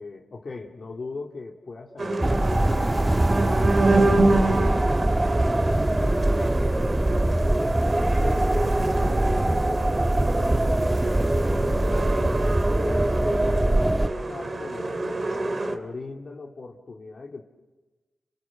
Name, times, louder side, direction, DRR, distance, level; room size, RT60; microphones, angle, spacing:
voice 1, 0.0-5.0 6.0-10.5 10.9-17.4, left 3 dB, 55° left, -1 dB, 2.5 m, -39 dB
sound 1, 2.0-15.8, right 2 dB, 45° right, 3.2 m, -27 dB
sound 2, 2.2-14.1, right 1 dB, 20° right, 1.3 m, -23 dB
30.0 x 25.0 x 7.5 m, 1.2 s
cardioid pair, 65°, 0 cm